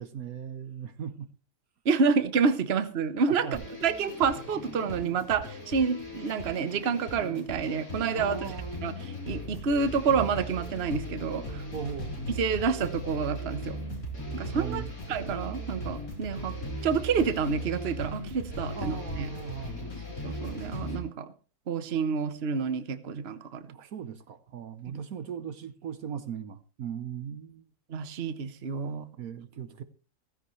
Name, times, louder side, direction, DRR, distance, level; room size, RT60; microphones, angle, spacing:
voice 1, 0.0-1.3 3.3-3.6 8.1-8.8 11.7-12.2 14.5-15.0 18.7-19.9 21.0-21.1 23.7-27.7 29.2-29.8, right 8 dB, 65° right, 1.4 m, -38 dB
voice 2, 1.8-8.5 8.8-8.9 9.3-11.6 12.4-13.8 14.3-14.8 15.1-16.5 16.8-19.3 20.2-21.3 21.7-23.6 24.9-25.0 27.9-29.1, right 5 dB, 45° right, 1.2 m, -28 dB
sound 1, 3.5-21.0, equal, 60° left, 4.5 m, -38 dB
16.0 x 15.0 x 3.2 m
omnidirectional pair, 1.7 m